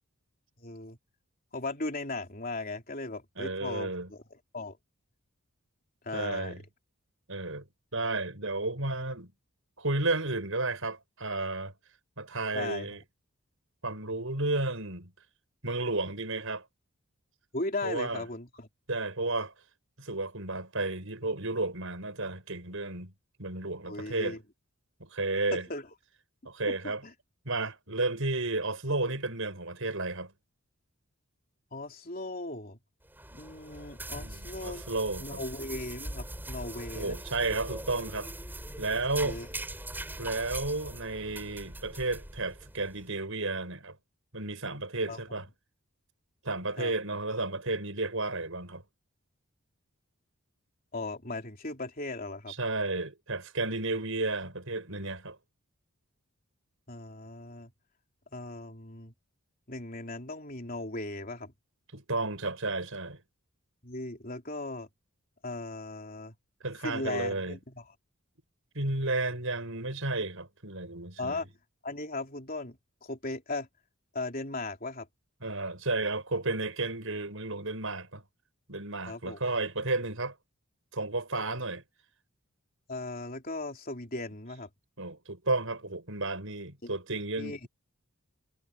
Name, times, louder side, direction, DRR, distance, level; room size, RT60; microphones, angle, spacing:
voice 1, 0.6-1.0 1.5-4.8 6.0-6.5 12.5-12.9 17.5-18.7 23.8-24.4 25.5-25.9 26.7-26.8 27.0-27.1 31.7-32.8 33.3-34.8 35.2-37.2 39.2-39.5 45.1-45.2 46.8-46.9 50.9-52.5 56.9-57.7 58.3-59.1 59.7-61.5 63.8-64.9 65.4-66.3 66.8-67.8 71.2-71.5 71.8-73.7 74.1-75.1 79.1-79.4 82.9-84.7 86.8-86.9 87.4-87.7, left 2 dB, 40° left, 3.5 m, -37 dB
voice 2, 3.4-4.1 6.1-6.6 7.3-7.6 7.9-9.3 9.8-11.7 12.2-13.0 13.8-15.1 15.6-16.6 17.8-18.2 18.9-19.5 20.0-23.1 23.4-24.4 25.0-25.7 26.4-27.0 27.4-30.3 34.2-35.4 36.9-38.3 38.8-39.4 40.2-44.0 44.3-45.5 46.4-48.8 52.5-55.4 61.9-63.2 66.6-67.6 68.7-71.4 75.4-78.2 78.7-80.3 80.9-81.8 85.0-87.7, right 2 dB, 65° right, 6.4 m, -32 dB
sound 1, 33.0-43.0, right 1 dB, 10° right, 5.7 m, -41 dB
head